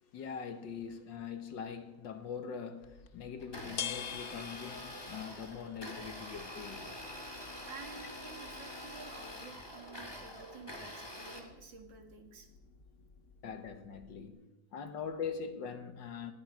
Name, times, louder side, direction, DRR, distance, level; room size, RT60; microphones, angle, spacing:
voice 1, 0.0-7.7 13.4-14.5 14.7-16.3, left 6 dB, 80° left, 2.0 m, -43 dB
sound 1, 2.8-14.3, left 9 dB, 60° left, 0.9 m, -49 dB
Domestic sounds home sounds, 3.4-11.4, left 1 dB, 15° left, 2.5 m, -46 dB
voice 2, 7.3-12.5, right 5 dB, 80° right, 2.6 m, -52 dB
19.0 x 13.5 x 4.9 m
omnidirectional pair, 2.0 m